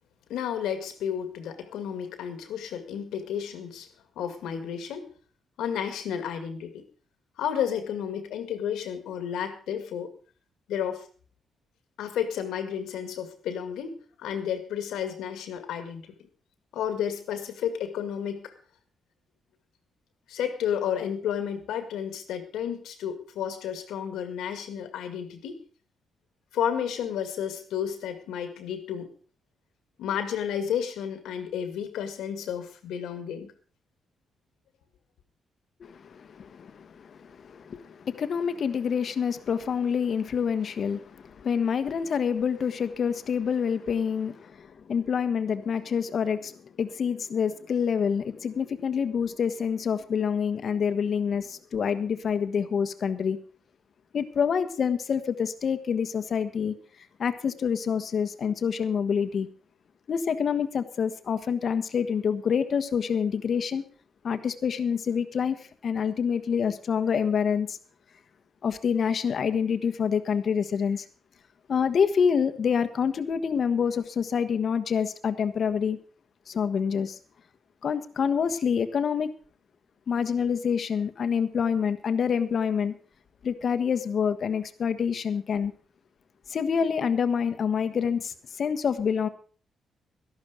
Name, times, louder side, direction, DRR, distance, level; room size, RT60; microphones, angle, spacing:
voice 1, 0.3-3.9 4.2-5.1 5.6-6.8 7.4-10.1 10.7-11.1 12.0-16.1 16.7-18.5 20.3-25.6 26.5-29.1 30.0-33.5, left 8 dB, 90° left, 9 dB, 2.0 m, -32 dB
voice 2, 35.8-53.4 54.1-56.7 57.2-59.5 60.1-63.8 64.2-65.6 65.8-67.8 68.6-71.0 71.7-76.0 76.5-77.2 77.8-79.3 80.1-82.9 83.4-85.7 86.5-89.3, left 7 dB, 55° left, 11 dB, 1.3 m, -27 dB
13.0 x 12.0 x 5.1 m, 0.41 s
cardioid pair, 80°, 0 cm